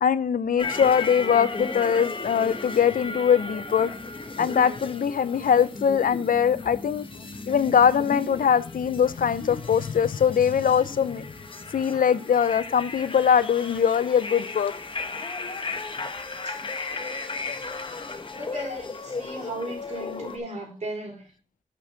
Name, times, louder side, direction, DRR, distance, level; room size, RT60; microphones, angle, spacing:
voice 1, 0.0-3.9 4.4-7.1 7.5-11.3 11.7-14.7, left 7 dB, 85° left, 0.6 m, -22 dB
sound 1, 0.6-20.4, left 3 dB, 40° left, 1.0 m, -35 dB
voice 2, 18.3-21.3, right 1 dB, 55° right, 3.9 m, -36 dB
6.2 x 5.9 x 5.6 m
wide cardioid pair, 135°, 14 cm